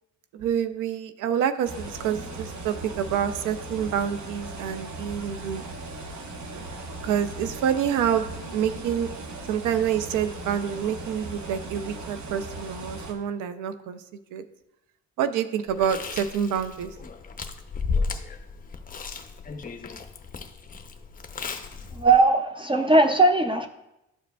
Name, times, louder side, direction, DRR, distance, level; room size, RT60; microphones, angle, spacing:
voice 1, 0.3-5.6 7.0-8.3 8.5-9.1 9.5-14.0 14.3-14.4 15.2-16.9, right 8 dB, 85° right, 11 dB, 0.5 m, -27 dB
sound 1, 1.6-13.1, right 2 dB, 65° right, 1.1 m, -38 dB
Chewing mastication, 15.7-22.2, left 4 dB, 30° left, 0.6 m, -34 dB
voice 2, 21.9-23.7, right 2 dB, 15° right, 6 dB, 0.5 m, -19 dB
12.0 x 4.9 x 2.3 m, 0.89 s
cardioid pair, 90°, 30 cm